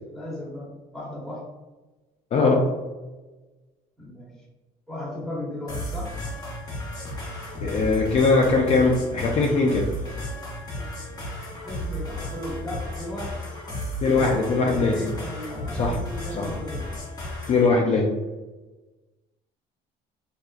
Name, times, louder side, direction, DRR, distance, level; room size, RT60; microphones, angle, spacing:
voice 1, 0.1-1.4 4.0-4.3 4.9-6.1 10.7-10.9 11.6-13.4 14.0-16.9 17.9-18.0, left 1 dB, ahead, -6 dB, 1.1 m, -36 dB
voice 2, 2.3-2.7 7.6-9.9 14.0-14.9 15.8-16.0 16.3-16.5 17.5-18.1, left 3 dB, 40° left, 0 dB, 0.4 m, -20 dB
sound 1, 5.7-17.7, left 1 dB, 20° left, 0.9 m, -34 dB
3.1 x 2.4 x 2.3 m, 1.2 s
cardioid pair, 110°, 17 cm